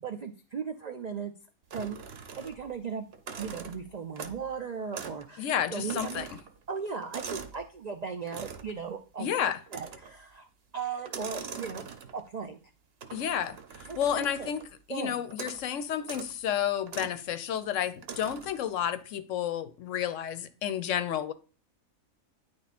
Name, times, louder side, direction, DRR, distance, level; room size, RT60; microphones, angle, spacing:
voice 1, 0.0-1.3 1.7-2.0 2.4-3.0 3.4-6.3 6.7-10.5 10.7-11.8 12.1-12.6 13.9-14.5 14.9-15.2, right 6 dB, 80° right, 0.3 m, -37 dB
sound 1, 1.7-2.8 3.1-4.5 4.9-5.2 5.5-7.6 8.3-8.8 9.7-10.2 11.0-12.3 13.0-14.7 15.3-15.7 16.0-16.3 16.9-17.2 18.0-18.6, right 6 dB, 55° right, 0.9 m, -43 dB
voice 2, 5.4-6.3 9.2-9.6 13.1-13.6 14.0-14.6 14.9-21.3, left 9 dB, 70° left, 0.9 m, -31 dB
9.4 x 3.4 x 4.1 m
omnidirectional pair, 1.5 m